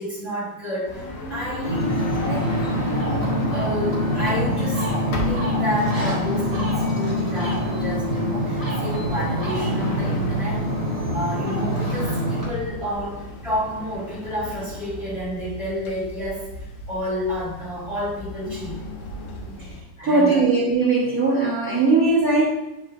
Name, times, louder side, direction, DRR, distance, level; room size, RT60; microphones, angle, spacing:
voice 1, 0.0-2.6 3.4-4.9 5.2-10.6 11.1-18.8 20.0-20.4 21.3-21.4, equal, 25° left, -10 dB, 2.6 m, -30 dB
sound 1, 0.8-19.8, left 1 dB, 60° left, 1.9 m, -35 dB
Ocean, 1.6-12.4, equal, 15° right, 1.3 m, -25 dB
voice 2, 20.0-22.5, right 3 dB, 50° right, -8 dB, 1.0 m, -19 dB
8.8 x 5.6 x 2.5 m, 0.98 s
omnidirectional pair, 3.7 m